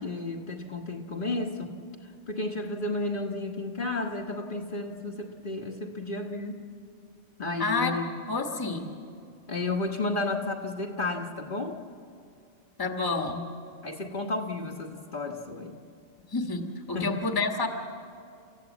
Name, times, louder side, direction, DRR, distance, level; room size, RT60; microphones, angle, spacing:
voice 1, 0.0-1.7 2.3-6.6 7.4-8.1 9.5-11.8 13.8-15.8 16.9-17.2, left 2 dB, 45° left, 1 dB, 1.6 m, -32 dB
voice 2, 7.6-7.9 8.3-8.9 12.8-13.5 16.3-17.7, left 3 dB, 20° left, 4 dB, 1.4 m, -29 dB
29.5 x 15.0 x 8.3 m, 2.4 s
omnidirectional pair, 1.2 m